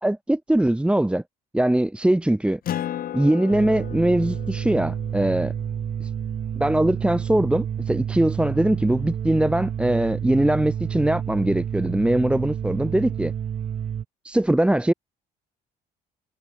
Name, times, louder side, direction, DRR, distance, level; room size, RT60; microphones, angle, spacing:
voice 1, 0.0-1.2 1.5-2.6 3.1-5.5 6.0-6.1 6.6-13.3 14.2-14.9, right 1 dB, 5° right, 2.0 m, -21 dB
Acoustic guitar, 2.6-7.6, left 11 dB, 60° left, 5.2 m, -36 dB
sound 1, 3.5-14.0, right 8 dB, 45° right, 2.8 m, -29 dB
cardioid pair, 110°, 17 cm